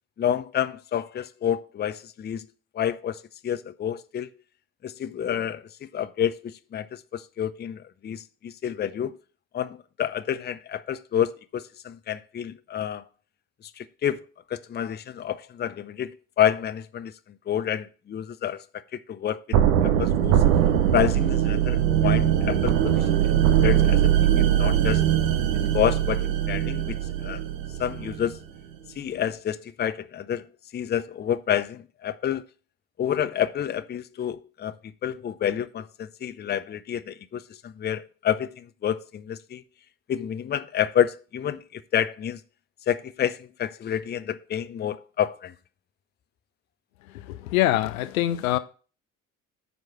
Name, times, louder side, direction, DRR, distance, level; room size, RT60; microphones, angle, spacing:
voice 1, 0.2-2.5 2.7-4.3 4.8-9.2 9.5-13.0 13.6-14.2 14.5-20.4 20.9-25.1 25.5-27.4 27.8-28.4 29.0-32.5 33.0-34.8 35.0-39.6 40.1-42.4 42.9-45.5, left 9 dB, 25° left, 0.6 m, -29 dB
sound 1, 19.5-28.4, right 10 dB, 70° right, 1.0 m, -21 dB
voice 2, 47.0-48.6, left 15 dB, 70° left, 0.6 m, -24 dB
9.2 x 4.8 x 5.9 m
figure-of-eight pair, 50°, 43 cm